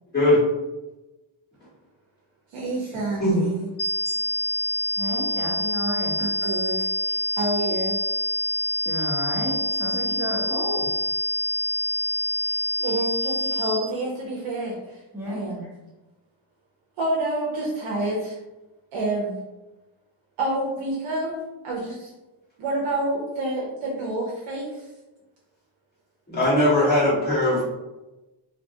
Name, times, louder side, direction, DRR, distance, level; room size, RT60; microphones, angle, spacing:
voice 1, 2.5-3.7 6.2-6.8 7.3-8.0 12.8-15.0 15.3-15.7 17.0-18.4 18.9-19.3 20.4-21.3 21.6-22.1 22.6-24.7, right 2 dB, 75° right, -4 dB, 0.7 m, -28 dB
sound 1, 3.8-13.8, equal, 45° left, 0.4 m, -26 dB
voice 2, 5.0-6.1 8.8-10.9 15.1-15.4, equal, 5° right, -7 dB, 0.9 m, -31 dB
voice 3, 26.3-27.6, left 1 dB, 20° left, -9 dB, 1.4 m, -19 dB
2.5 x 2.2 x 2.7 m, 1.0 s
wide cardioid pair, 135°, 50 cm